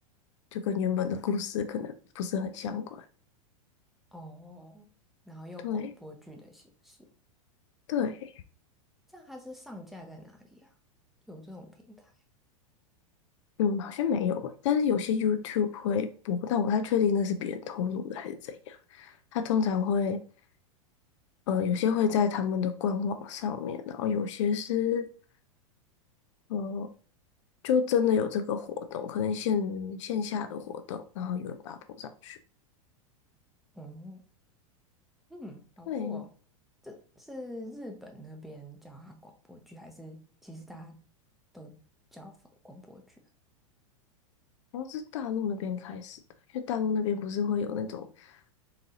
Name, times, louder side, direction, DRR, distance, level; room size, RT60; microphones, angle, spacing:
voice 1, 0.5-3.0 5.6-5.9 7.9-8.3 13.6-20.2 21.5-25.1 26.5-26.9 27.6-32.4 35.9-36.2 44.7-46.2 46.5-48.3, left 7 dB, 60° left, 0.4 m, -29 dB
voice 2, 4.1-4.9 5.3-7.1 9.1-10.7 11.3-12.1 33.7-34.2 35.3-36.3 36.8-41.0 41.5-41.8 42.1-42.4 42.6-43.2, left 1 dB, ahead, 0.7 m, -46 dB
4.0 x 2.7 x 2.6 m
hypercardioid pair, 95°, 18 cm